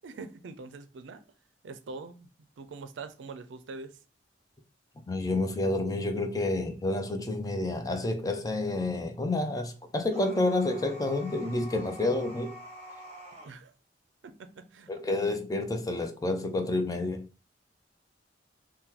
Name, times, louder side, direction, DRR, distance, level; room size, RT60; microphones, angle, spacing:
voice 1, 0.0-1.2 1.6-2.3 2.6-4.0 13.4-13.7 14.2-14.9, right 4 dB, 85° right, 0.4 m, -43 dB
voice 2, 5.1-12.5 14.9-17.3, left 2 dB, 20° left, 0.5 m, -29 dB
sound 1, 10.1-13.5, equal, 35° right, 0.9 m, -46 dB
2.9 x 2.2 x 3.6 m
head